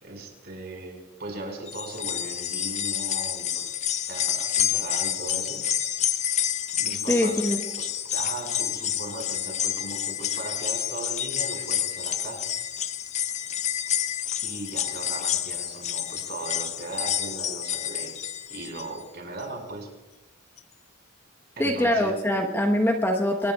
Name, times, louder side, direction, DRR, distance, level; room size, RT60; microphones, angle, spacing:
voice 1, 0.0-3.7 4.1-5.6 6.8-7.4 7.8-12.4 14.4-19.9 21.6-22.2, right 2 dB, 50° right, 1 dB, 5.0 m, -38 dB
sound 1, 1.7-19.0 19.4-19.5 20.6-20.7, left 10 dB, 35° left, 0.6 m, -29 dB
voice 2, 7.1-7.6 21.6-23.5, left 1 dB, 10° left, 2 dB, 1.1 m, -23 dB
25.5 x 20.5 x 2.4 m, 0.99 s
head